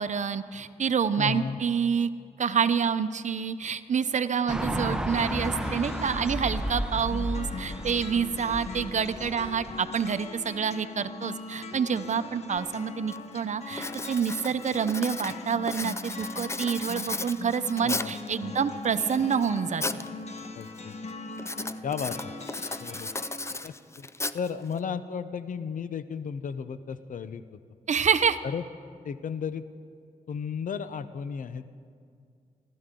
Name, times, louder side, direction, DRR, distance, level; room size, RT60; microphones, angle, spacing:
voice 1, 0.0-2.1 2.4-19.8 27.9-28.4, right 6 dB, 55° right, 11 dB, 0.7 m, -27 dB
voice 2, 1.2-1.6 17.8-18.8 20.5-20.9 21.8-22.3 22.8-23.1 23.6-24.1 24.3-27.6 28.4-28.7 29.0-29.6 30.3-31.8, left 6 dB, 65° left, 13 dB, 0.7 m, -34 dB
sound 1, 4.5-9.8, equal, 5° right, 1.0 m, -33 dB
sound 2, 5.1-23.6, left 3 dB, 50° left, 1.3 m, -40 dB
Writing, 12.6-12.7 13.1-13.4 13.7-18.3 18.8-20.1 20.4-20.8 21.4-24.8, left 2 dB, 20° left, 0.5 m, -35 dB
29.0 x 12.5 x 3.8 m, 2.3 s
cardioid pair, 70°, 14 cm